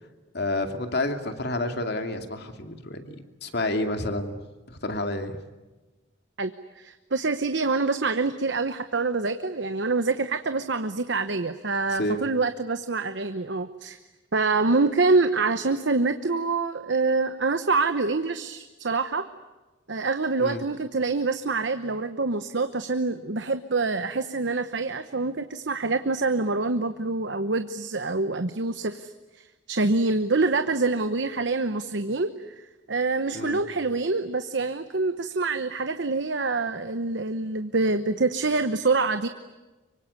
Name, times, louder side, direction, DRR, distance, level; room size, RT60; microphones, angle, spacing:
voice 1, 0.3-3.2 3.4-4.4 4.7-5.4 11.9-12.3 20.4-20.6 33.3-33.6, left 2 dB, 60° left, 6 dB, 2.5 m, -29 dB
voice 2, 6.8-14.0 14.3-19.3 19.9-29.1 29.7-32.3 32.9-39.3, right 3 dB, 65° right, 10 dB, 1.0 m, -26 dB
25.5 x 24.0 x 9.7 m, 1.2 s
head